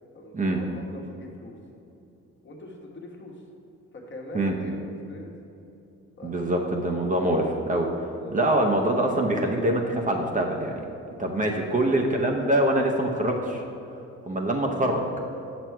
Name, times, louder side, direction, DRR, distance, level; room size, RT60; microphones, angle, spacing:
voice 1, 0.1-1.6 2.4-3.4 3.9-5.3 6.2-6.5 7.0-7.5 8.2-8.4 11.5-11.9, left 1 dB, 40° left, 0 dB, 1.3 m, -42 dB
voice 2, 6.2-7.9 8.3-10.9 11.2-13.6 14.3-15.0, right 1 dB, 25° right, 1 dB, 0.7 m, -24 dB
6.1 x 6.0 x 4.6 m, 2.8 s
cardioid pair, 90°, 30 cm